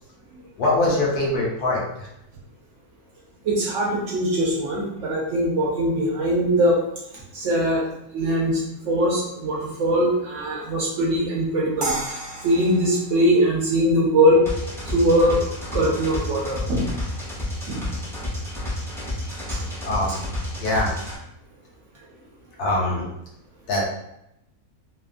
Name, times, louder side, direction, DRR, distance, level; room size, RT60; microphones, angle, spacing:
voice 1, 0.6-2.1 8.2-8.3 19.8-20.2 20.6-20.9 22.6-23.1 23.7-23.9, left 2 dB, 75° left, -3 dB, 1.3 m, -23 dB
voice 2, 3.4-6.8 7.3-7.8 8.1-11.9 12.4-14.4 14.9-15.4 15.7-16.9 17.7-17.8 19.5-19.6, equal, 65° right, -4 dB, 0.8 m, -21 dB
sound 1, 11.8-14.9, right 2 dB, 90° right, 0.4 m, -33 dB
sound 2, 14.5-21.2, left 1 dB, 5° left, 0.4 m, -30 dB
2.8 x 2.3 x 2.4 m, 0.83 s
omnidirectional pair, 1.7 m